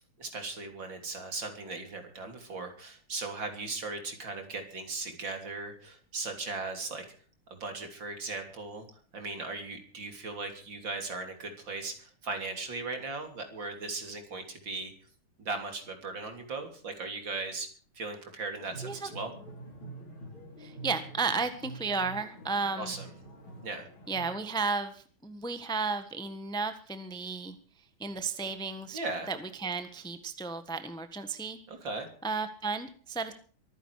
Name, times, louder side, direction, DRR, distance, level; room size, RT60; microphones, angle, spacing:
voice 1, 0.2-7.1 7.6-8.9 9.1-14.9 15.4-17.7 18.0-19.3 22.8-23.1 23.6-23.9 28.9-29.3 31.7-32.1, right 3 dB, 60° right, 5 dB, 3.9 m, -38 dB
sound 1, 18.6-24.4, right 3 dB, 75° left, 4.7 m, -46 dB
voice 2, 20.6-22.9 24.1-27.5 28.0-29.0 29.3-31.6 32.2-33.3, right 4 dB, 5° left, 9 dB, 1.1 m, -33 dB
24.0 x 10.0 x 4.9 m, 0.42 s
omnidirectional pair, 2.3 m